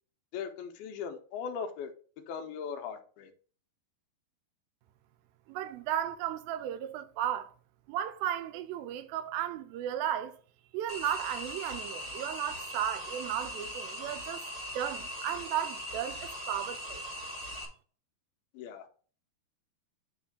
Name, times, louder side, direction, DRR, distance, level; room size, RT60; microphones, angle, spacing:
voice 1, 0.3-1.9 2.3-3.3 18.5-18.9, left 6 dB, 80° left, 2.7 m, -39 dB
voice 2, 5.5-7.5 7.9-10.3 10.7-14.4 14.7-17.0, right 11 dB, 80° right, 2.4 m, -35 dB
sound 1, 10.9-17.6, equal, 30° right, 1.3 m, -40 dB
9.0 x 3.2 x 5.1 m
omnidirectional pair, 4.5 m